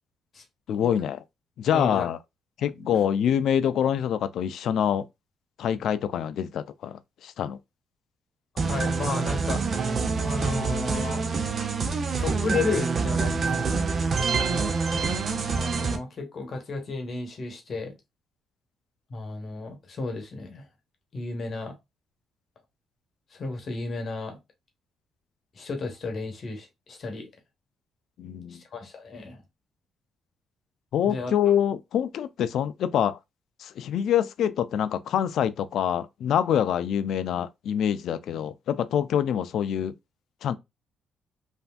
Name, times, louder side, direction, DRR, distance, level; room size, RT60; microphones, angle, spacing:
voice 1, 0.7-1.2 1.6-2.2 2.6-5.1 5.6-7.6 28.2-28.6 30.9-33.2 33.6-39.9 40.4-40.6, left 9 dB, 70° left, 0.3 m, -25 dB
voice 2, 1.7-2.1 2.8-3.0 8.5-9.7 10.1-11.2 12.2-13.9 15.5-17.9 19.1-20.7 21.1-21.7 23.3-24.4 25.5-27.3 28.5-29.4 31.0-31.3, left 3 dB, 50° left, 0.9 m, -33 dB
sound 1, 8.6-16.0, right 4 dB, 45° right, 0.5 m, -26 dB
3.2 x 2.5 x 2.2 m
cardioid pair, 90°, 0 cm